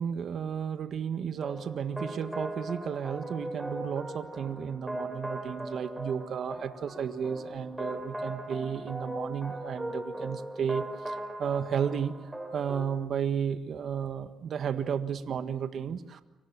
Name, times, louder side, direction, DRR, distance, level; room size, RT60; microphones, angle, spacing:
voice 1, 0.0-12.1 12.5-16.2, right 7 dB, 60° right, 9 dB, 1.6 m, -33 dB
sound 1, 1.4-13.0, right 1 dB, 10° right, 5.4 m, -39 dB
30.0 x 25.0 x 7.4 m, 1.1 s
cardioid pair, 90°, 0 cm